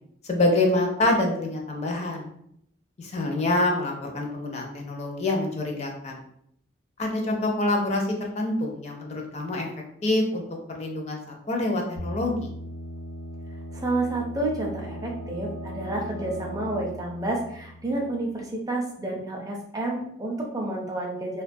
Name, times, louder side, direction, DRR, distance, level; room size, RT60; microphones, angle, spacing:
voice 1, 0.2-2.3 3.0-6.2 7.0-8.0 8.4-9.7 10.0-10.4 10.7-11.2 11.5-12.5, left 2 dB, 35° left, 1 dB, 0.4 m, -26 dB
sound 1, 12.0-18.6, equal, 75° left, 0.9 m, -38 dB
voice 2, 13.7-21.4, right 2 dB, 20° right, -1 dB, 0.4 m, -30 dB
2.4 x 2.2 x 2.6 m, 0.73 s
head